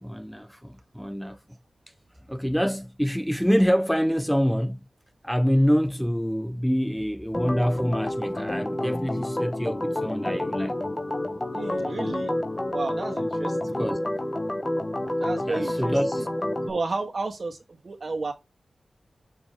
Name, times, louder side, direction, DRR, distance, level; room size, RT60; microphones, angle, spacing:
voice 1, 0.0-1.4 2.3-4.8 5.2-10.8 13.6-14.0 15.5-16.3, equal, ahead, 0.3 m, -26 dB
Organ, 7.3-16.7, left 1 dB, 20° left, 0.8 m, -29 dB
voice 2, 11.5-12.3 12.7-13.8 15.2-16.2 16.7-18.3, right 3 dB, 45° right, 1.6 m, -32 dB
7.0 x 4.0 x 3.6 m
wide cardioid pair, 135°, 0 cm